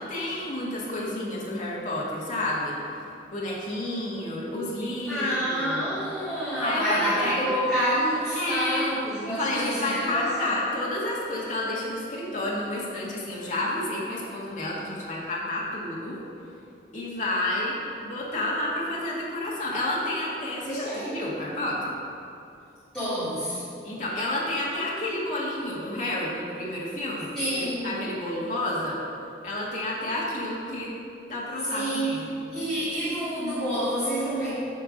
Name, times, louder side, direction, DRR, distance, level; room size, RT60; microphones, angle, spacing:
voice 1, 0.0-2.8 3.3-5.9 6.6-7.5 8.3-8.8 9.3-16.2 16.9-22.0 23.8-29.0 29.4-30.9 31.3-32.3, left 1 dB, 40° left, -5 dB, 1.7 m, -30 dB
voice 2, 5.1-10.5 20.6-21.2 22.9-23.6 27.3-27.9 31.7-32.2 32.5-34.5, equal, 5° left, -15 dB, 2.3 m, -28 dB
9.4 x 4.5 x 6.5 m, 2.6 s
head